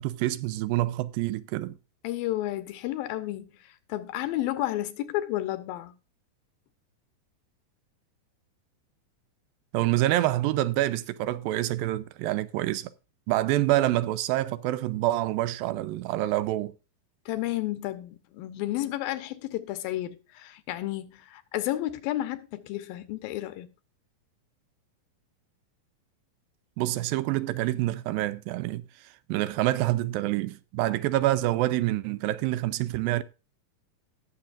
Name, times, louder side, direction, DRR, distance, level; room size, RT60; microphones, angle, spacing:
voice 1, 0.0-1.8 9.7-12.9 13.3-16.7 26.8-28.8 29.3-33.2, right 15 dB, 85° right, 2.4 m, -27 dB
voice 2, 2.0-5.9 17.3-23.7, left 14 dB, 85° left, 2.7 m, -32 dB
18.0 x 7.1 x 2.5 m
omnidirectional pair, 4.1 m